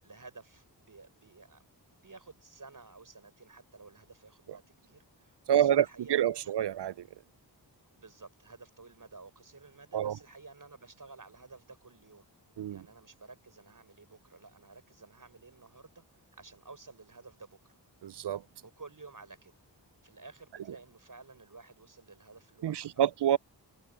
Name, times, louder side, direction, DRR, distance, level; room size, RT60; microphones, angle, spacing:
voice 1, 0.0-1.6 1.9-6.5 7.9-12.3 12.7-17.8 18.6-19.5 20.0-23.1, right 3 dB, 50° right, 7.0 m, -53 dB
voice 2, 5.5-5.8 6.1-6.9 9.9-10.2 12.6-12.8 18.0-18.4 22.6-23.4, right 10 dB, 70° right, 0.6 m, -27 dB
wide cardioid pair, 70°, 42 cm